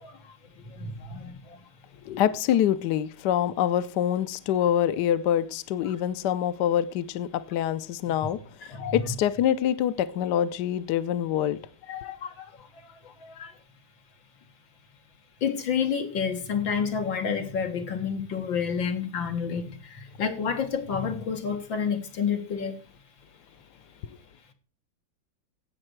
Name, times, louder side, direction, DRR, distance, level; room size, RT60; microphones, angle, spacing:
voice 1, 0.8-1.3 8.7-9.0 11.9-12.3 13.2-13.5 15.4-19.6 20.2-22.7, left 6 dB, 90° left, 2.4 m, -29 dB
voice 2, 2.0-8.4 8.7-11.6, left 10 dB, 70° left, 1.2 m, -25 dB
16.5 x 6.5 x 4.5 m
omnidirectional pair, 2.0 m